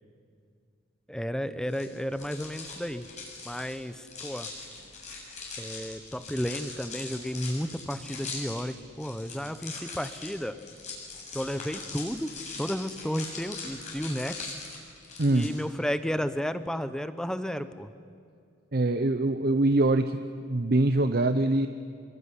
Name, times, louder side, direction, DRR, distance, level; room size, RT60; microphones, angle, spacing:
voice 1, 1.1-3.1 3.5-4.5 5.6-10.6 11.3-14.5 15.3-17.9, equal, 5° left, 12 dB, 0.9 m, -33 dB
sound 1, 1.7-15.5, left 4 dB, 40° left, 7.2 m, -41 dB
voice 2, 18.7-20.2 20.5-21.7, right 2 dB, 50° right, 9 dB, 0.9 m, -23 dB
26.5 x 22.5 x 9.8 m, 2.3 s
head